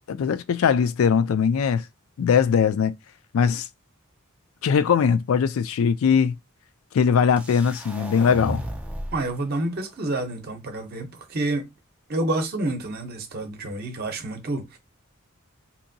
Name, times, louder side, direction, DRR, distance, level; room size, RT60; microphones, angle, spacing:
voice 1, 0.1-1.8 2.2-2.9 3.3-3.7 4.6-6.4 6.9-8.6, left 6 dB, 70° left, 0.3 m, -20 dB
sound 1, 7.4-9.3, equal, 5° right, 0.3 m, -34 dB
voice 2, 9.1-11.7 12.1-14.8, right 2 dB, 45° right, 0.7 m, -28 dB
2.8 x 2.6 x 2.6 m
head